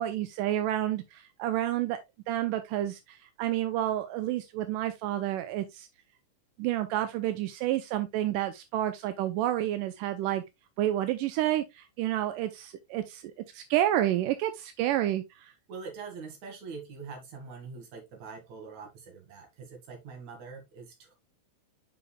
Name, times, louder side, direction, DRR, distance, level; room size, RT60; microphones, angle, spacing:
voice 1, 0.0-2.0 2.3-5.9 6.6-10.4 10.8-13.2 13.5-15.5, right 13 dB, 85° right, 2.2 m, -29 dB
voice 2, 15.7-21.2, right 5 dB, 60° right, 3.2 m, -44 dB
8.3 x 5.7 x 2.3 m
omnidirectional pair, 3.8 m